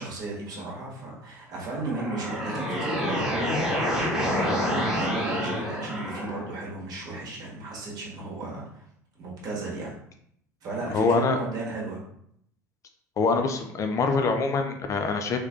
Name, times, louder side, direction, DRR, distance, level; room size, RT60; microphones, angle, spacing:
voice 1, 0.0-3.6 3.8-8.8 9.2-9.9 10.6-12.0, right 3 dB, 45° right, -4 dB, 1.4 m, -35 dB
sound 1, 1.6-6.6, equal, 5° right, 1.2 m, -28 dB
voice 2, 10.9-11.4 13.2-15.4, left 4 dB, 35° left, 5 dB, 0.4 m, -24 dB
3.2 x 3.1 x 2.3 m, 0.70 s
hypercardioid pair, 70°, 9 cm